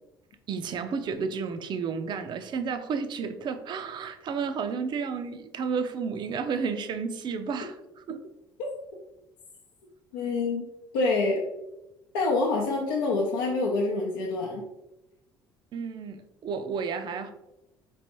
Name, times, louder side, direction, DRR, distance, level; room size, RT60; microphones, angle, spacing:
voice 1, 0.5-7.7 8.1-8.2 15.7-17.3, right 5 dB, 45° right, 0.4 m, -32 dB
voice 2, 10.1-10.7 10.9-11.4 12.1-14.6, left 3 dB, 80° left, 0.6 m, -26 dB
4.3 x 3.1 x 2.9 m
hypercardioid pair, 60°, 11 cm